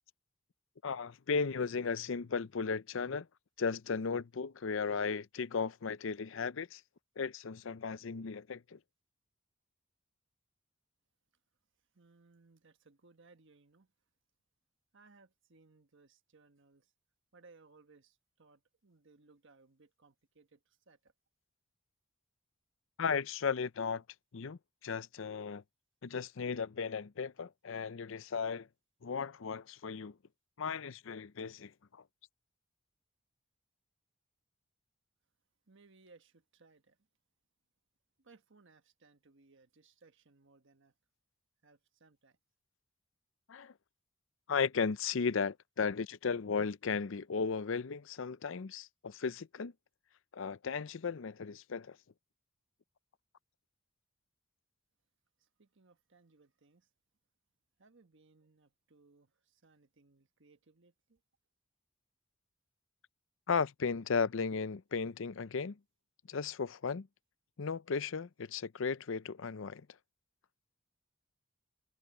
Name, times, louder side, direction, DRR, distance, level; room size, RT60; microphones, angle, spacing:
voice 1, 0.8-3.3 3.6-6.8 7.2-8.8 23.0-24.0 24.3-25.6 26.0-28.7 29.0-30.1 30.6-32.0 43.5-43.7 44.5-49.7 50.3-52.0 63.5-65.8 66.3-67.1 67.6-69.9, left 5 dB, 65° left, 0.6 m, -35 dB
voice 2, 11.9-13.9 14.9-16.9 17.3-21.1 35.7-37.0 38.2-40.9 41.6-42.4 55.4-56.9 57.8-61.2, right 3 dB, 65° right, 1.3 m, -64 dB
head